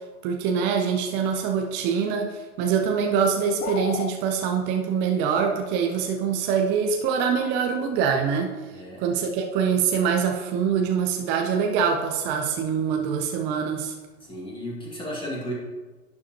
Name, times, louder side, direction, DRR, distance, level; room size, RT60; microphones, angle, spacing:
voice 1, 0.2-8.5 9.0-13.9, right 6 dB, 25° right, 3 dB, 0.7 m, -24 dB
sound 1, 3.6-4.2, left 9 dB, 75° left, 0.8 m, -31 dB
voice 2, 8.7-9.0 14.2-15.5, equal, 10° left, -4 dB, 2.1 m, -34 dB
11.0 x 7.5 x 3.0 m, 1.3 s
hypercardioid pair, 130°, 45 cm